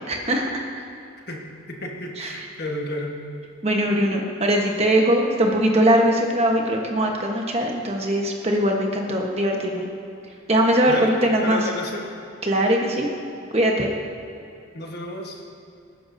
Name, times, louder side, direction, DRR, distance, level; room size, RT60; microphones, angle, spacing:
voice 1, 0.1-0.5 0.8-0.9 2.2-2.5 3.6-9.8 10.5-11.6 12.4-13.1 13.5-13.9, right 1 dB, 30° right, 1 dB, 1.2 m, -21 dB
voice 2, 1.3-3.1 10.9-11.1 11.4-12.0 14.7-15.4, left 1 dB, 50° left, 0 dB, 1.5 m, -31 dB
20.0 x 10.5 x 2.8 m, 2.6 s
head